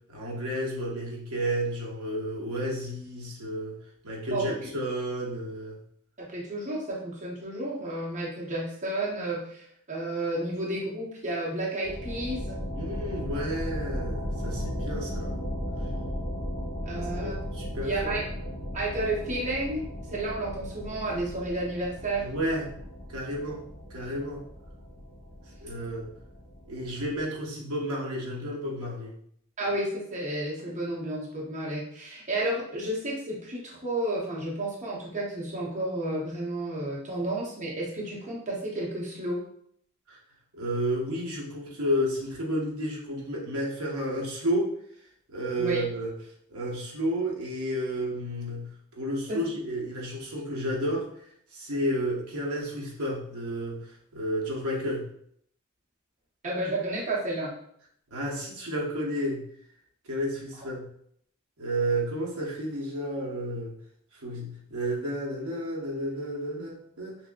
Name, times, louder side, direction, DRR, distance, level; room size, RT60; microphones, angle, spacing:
voice 1, 0.1-3.8 4.0-5.8 12.8-15.4 16.9-18.2 22.2-22.7 23.1-23.6 23.9-24.4 25.6-26.1 26.7-29.1 40.1-40.2 40.5-44.7 45.3-46.1 46.5-48.7 49.0-55.1 58.1-59.5 60.0-60.9 61.6-63.8 64.1-67.2, equal, 75° right, -2 dB, 0.9 m, -31 dB
voice 2, 4.3-4.7 6.2-12.6 16.9-17.3 17.8-18.2 18.7-19.8 20.1-22.2 29.6-39.4 45.6-45.8 49.3-49.4 56.4-57.5, right 1 dB, 35° right, -4 dB, 0.7 m, -31 dB
sound 1, 11.8-27.2, equal, 50° left, 0.9 m, -36 dB
5.9 x 2.0 x 2.3 m, 0.67 s
head